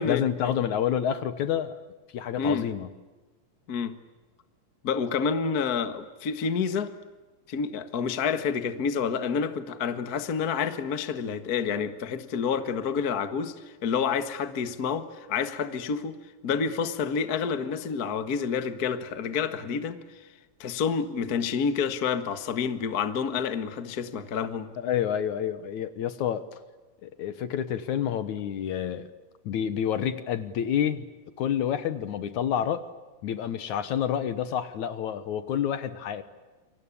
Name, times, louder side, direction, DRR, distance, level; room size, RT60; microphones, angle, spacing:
voice 1, 0.1-1.8 2.1-2.9 24.8-26.4 27.0-29.1 29.5-31.1 31.4-32.8 33.2-36.2, left 9 dB, 65° left, 13 dB, 2.3 m, -28 dB
voice 2, 4.8-6.9 7.5-13.5 13.8-16.1 16.4-20.0 20.6-24.7, left 6 dB, 45° left, 10 dB, 1.2 m, -28 dB
28.5 x 24.0 x 8.5 m, 1.2 s
omnidirectional pair, 4.1 m